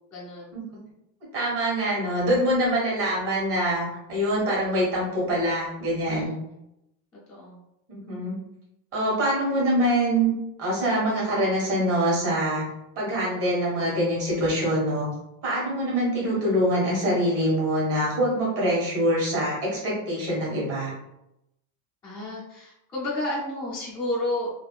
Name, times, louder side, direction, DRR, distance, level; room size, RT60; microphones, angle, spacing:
voice 1, 0.1-0.5 6.1-6.3 7.3-7.6 22.0-24.5, left 1 dB, 10° left, -11 dB, 0.3 m, -31 dB
voice 2, 1.3-6.3 7.9-8.3 8.9-10.3 10.6-12.6 13.0-15.1 15.4-20.9, equal, 30° right, -5 dB, 1.4 m, -24 dB
3.5 x 2.4 x 2.3 m, 0.85 s
cardioid pair, 160°, 48 cm